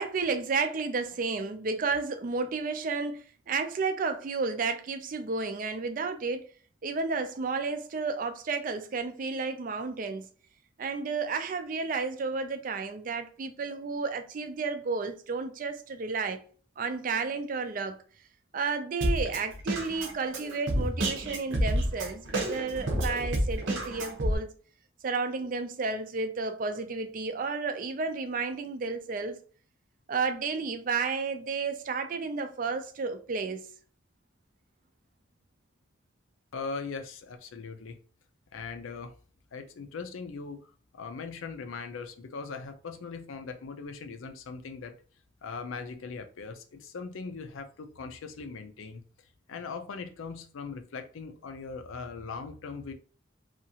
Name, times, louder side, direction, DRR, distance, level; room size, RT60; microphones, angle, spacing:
voice 1, 0.0-6.4 6.8-10.3 10.8-16.4 16.8-18.0 18.5-24.5 25.0-29.4 30.1-33.7, right 4 dB, 40° right, 0.3 m, -32 dB
Drum kit, 19.0-24.4, right 1 dB, 70° right, 0.7 m, -29 dB
voice 2, 36.5-38.0 38.5-39.1 39.5-44.9 45.4-49.0 49.5-52.9, left 4 dB, 85° left, 0.5 m, -40 dB
2.8 x 2.4 x 2.7 m
head